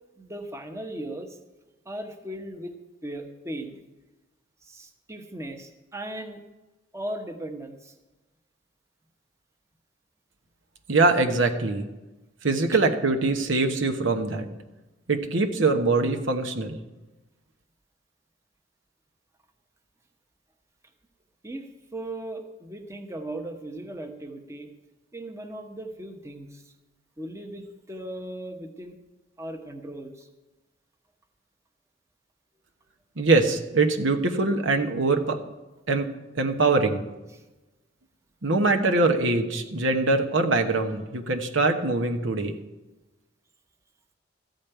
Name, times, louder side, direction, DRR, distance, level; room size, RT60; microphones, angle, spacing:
voice 1, 0.2-1.4 1.8-2.7 3.0-3.8 4.6-6.4 6.9-7.9 21.4-24.7 25.1-26.7 27.2-29.0 29.4-30.3 37.3-37.4, right 1 dB, 15° right, 5 dB, 1.0 m, -37 dB
voice 2, 10.9-11.8 12.4-14.5 15.1-16.8 33.2-35.4 35.9-37.0 38.4-42.5, right 3 dB, 80° right, 4 dB, 1.2 m, -23 dB
14.0 x 5.2 x 9.1 m, 1.1 s
head